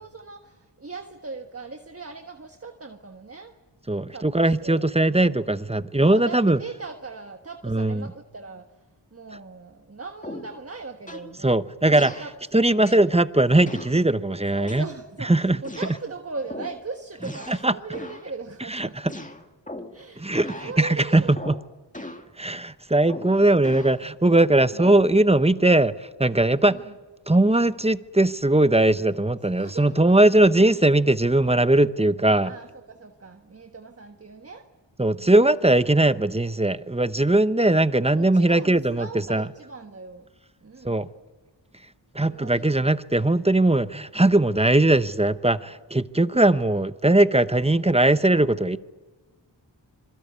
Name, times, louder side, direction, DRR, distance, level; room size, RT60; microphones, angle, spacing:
voice 1, 0.0-3.5 4.1-4.9 5.9-8.7 9.1-13.0 14.5-19.0 19.9-21.6 24.7-25.1 26.5-26.9 29.5-30.8 32.4-34.7 35.1-35.8 38.1-40.3 40.6-41.0 42.2-42.9, right 4 dB, 30° right, 6 dB, 1.4 m, -39 dB
voice 2, 3.9-6.6 7.6-8.1 11.4-12.1 12.5-14.9 15.3-15.6 17.5-17.7 18.7-18.9 20.2-21.5 22.4-25.9 26.2-26.8 27.3-32.5 35.0-39.5 40.8-41.1 42.1-48.8, right 2 dB, 15° right, 13 dB, 0.9 m, -20 dB
sound 1, 10.2-10.6 11.1-11.3 11.9-12.3 12.9-13.1 13.7-14.0 14.7-15.2 15.6-16.0 16.5-16.8 17.2-17.7 17.9-18.3 19.1-20.0 20.4-20.8 21.4-21.7 21.9-22.3 23.1-24.0 24.8-25.1, left 1 dB, 15° left, 1.9 m, -38 dB
26.0 x 22.0 x 8.3 m, 1.2 s
cardioid pair, 50°, 45 cm